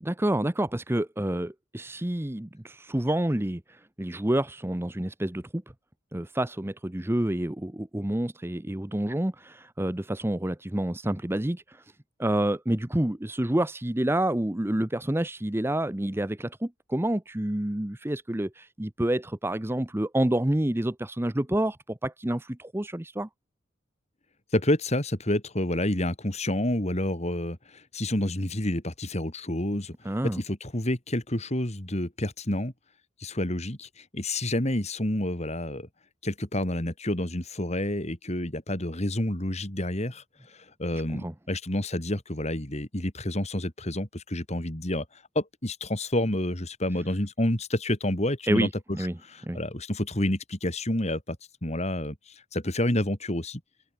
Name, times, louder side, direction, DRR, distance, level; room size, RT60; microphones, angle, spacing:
voice 1, 0.0-5.6 6.1-11.8 12.2-23.3 30.0-30.4 41.1-41.3 48.5-49.2 49.4-49.6, right 1 dB, 10° right, 0.7 m, -28 dB
voice 2, 24.5-29.9 30.3-32.7 33.2-35.9 36.2-45.0 45.3-48.7 49.3-53.6, left 1 dB, 35° left, 3.1 m, -29 dB
head